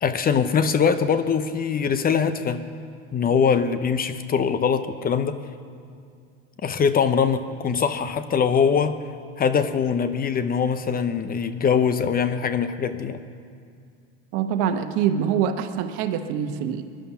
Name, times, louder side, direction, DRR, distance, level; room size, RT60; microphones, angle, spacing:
voice 1, 0.0-2.6 3.1-5.4 6.6-9.0 9.4-13.2, left 6 dB, 25° left, 11 dB, 0.7 m, -22 dB
voice 2, 14.3-16.8, right 8 dB, 65° right, 8 dB, 1.2 m, -24 dB
19.5 x 11.5 x 5.7 m, 2.3 s
supercardioid pair, 105°, 33 cm